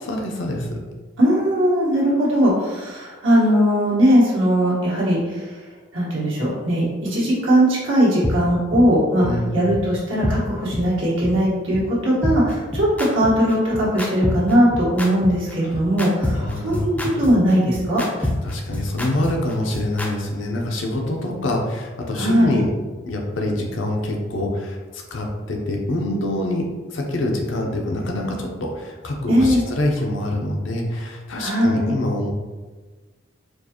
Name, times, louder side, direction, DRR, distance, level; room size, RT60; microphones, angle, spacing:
voice 1, 0.0-0.8 9.2-9.7 15.6-15.7 16.3-17.2 18.2-22.7 23.1-32.3, left 1 dB, 75° left, 1 dB, 0.6 m, -25 dB
voice 2, 1.2-5.5 5.9-9.2 9.5-18.0 22.2-22.6 29.3-29.6 31.4-31.9, equal, 85° right, -6 dB, 1.4 m, -19 dB
sound 1, 8.2-8.3 8.7-8.8 9.2-9.3 9.7-9.8 10.2-10.3 10.7-10.8 11.2-11.3 11.7-11.8 12.2-20.1, left 1 dB, 5° left, 0.4 m, -26 dB
4.5 x 2.4 x 2.9 m, 1.3 s
head